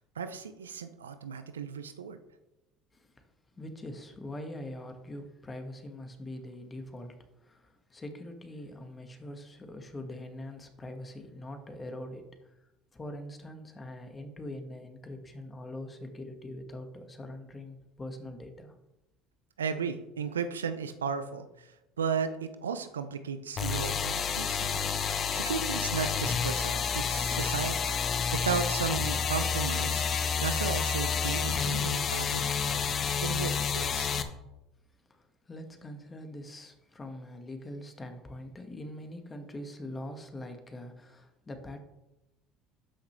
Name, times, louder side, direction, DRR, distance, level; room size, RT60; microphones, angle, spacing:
voice 1, 0.2-2.2 19.6-21.7 22.0-24.7 25.3-28.0 28.3-30.1 30.4-32.8 33.2-34.2, right 6 dB, 85° right, 10 dB, 0.5 m, -35 dB
voice 2, 2.9-3.3 3.6-18.8 35.1-41.8, left 1 dB, 25° left, 6 dB, 1.7 m, -43 dB
sound 1, 23.6-34.2, left 6 dB, 45° left, 0.9 m, -29 dB
12.5 x 5.8 x 3.3 m, 0.93 s
hypercardioid pair, 65°, 0 cm